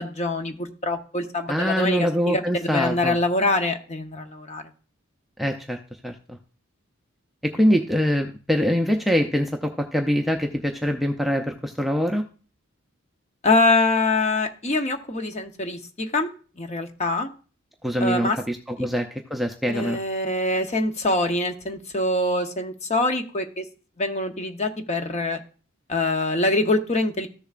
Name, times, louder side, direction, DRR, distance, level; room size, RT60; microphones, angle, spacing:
voice 1, 0.0-4.6 13.4-16.3 16.6-17.3 18.0-18.4 18.8-18.9 19.7-23.6 24.0-25.4 25.9-27.3, left 2 dB, 30° left, 5 dB, 0.9 m, -24 dB
voice 2, 1.5-3.2 5.4-5.8 6.0-6.4 7.4-12.3 17.8-20.0, equal, ahead, 3 dB, 0.5 m, -24 dB
14.0 x 6.9 x 2.5 m, 0.39 s
head